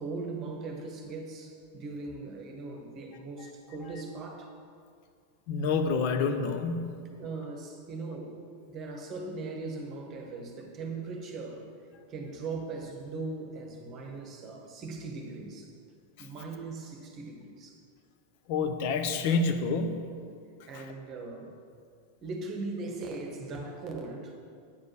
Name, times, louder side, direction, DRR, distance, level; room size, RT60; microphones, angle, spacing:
voice 1, 0.0-4.5 7.2-8.4 8.7-11.7 12.1-15.7 16.2-17.8 20.7-21.5 22.2-24.4, right 3 dB, 30° right, 3 dB, 1.3 m, -39 dB
voice 2, 5.5-7.1 16.2-16.3 18.5-20.1 20.7-20.9, left 4 dB, 50° left, 6 dB, 0.8 m, -28 dB
9.0 x 5.2 x 6.1 m, 2.2 s
figure-of-eight pair, 90°, 0 cm